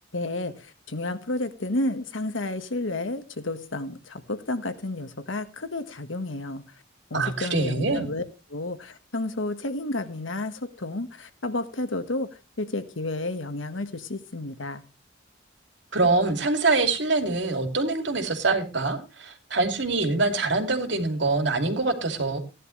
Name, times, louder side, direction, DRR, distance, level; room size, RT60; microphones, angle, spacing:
voice 1, 0.1-6.6 7.1-8.2 8.5-12.3 12.6-14.8, left 2 dB, 90° left, 1.5 m, -31 dB
voice 2, 7.1-8.1 15.9-22.4, right 3 dB, 65° right, 2.6 m, -24 dB
16.5 x 11.0 x 3.2 m
head